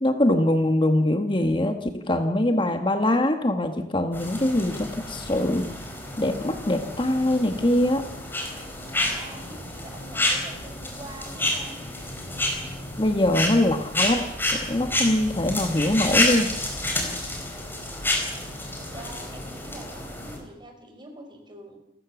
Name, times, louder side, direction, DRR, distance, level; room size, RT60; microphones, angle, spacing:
voice 1, 0.0-5.7 6.2-8.0 13.0-16.5, left 1 dB, 30° left, 7 dB, 1.4 m, -23 dB
sound 1, 4.1-20.4, left 1 dB, 10° left, 4.8 m, -29 dB
voice 2, 9.0-11.8 18.4-21.8, right 1 dB, 25° right, 4 dB, 4.9 m, -45 dB
28.5 x 15.5 x 7.1 m, 0.87 s
head